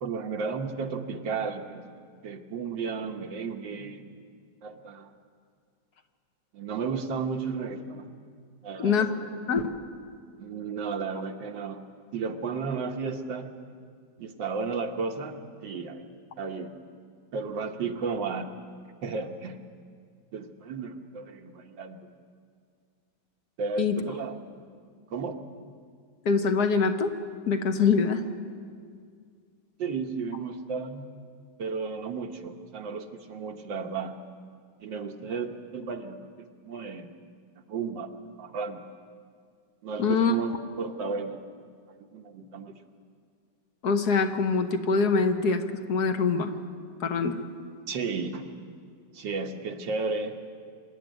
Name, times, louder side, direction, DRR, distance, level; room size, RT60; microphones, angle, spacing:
voice 1, 0.0-4.2 4.6-5.1 6.5-8.2 8.6-9.3 10.4-11.8 12.1-13.5 14.2-16.1 16.4-16.8 17.3-18.5 19.0-19.6 20.3-22.1 23.6-24.3 25.1-25.4 29.8-31.1 31.6-34.2 34.8-37.1 37.6-38.1 38.4-38.8 39.8-41.4 41.9-42.7 47.9-48.5 49.1-50.4, right 5 dB, 85° right, 5 dB, 1.9 m, -34 dB
voice 2, 26.2-27.1 27.5-28.2 40.0-40.3 43.8-45.6 45.9-46.5 47.0-47.4, left 5 dB, 65° left, 6 dB, 1.6 m, -24 dB
25.5 x 11.0 x 9.2 m, 2.1 s
omnidirectional pair, 1.9 m